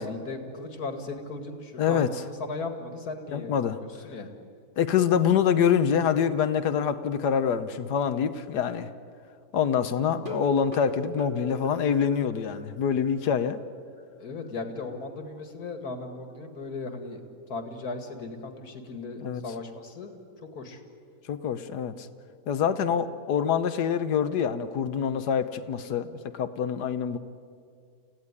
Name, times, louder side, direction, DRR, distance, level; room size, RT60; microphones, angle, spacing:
voice 1, 0.0-3.5 3.8-4.3 14.2-17.2 17.5-20.2 20.5-20.8, left 3 dB, 65° left, 6 dB, 2.5 m, -37 dB
voice 2, 1.8-2.1 3.3-3.8 4.8-8.9 9.5-13.6 19.2-19.4 21.3-22.1 22.5-27.2, left 7 dB, 85° left, 11 dB, 1.5 m, -25 dB
sound 1, 10.1-12.7 13.0-13.1 13.5-13.6 14.0-14.1, left 1 dB, 30° right, 3.0 m, -37 dB
28.5 x 16.0 x 9.7 m, 2.3 s
omnidirectional pair, 1.7 m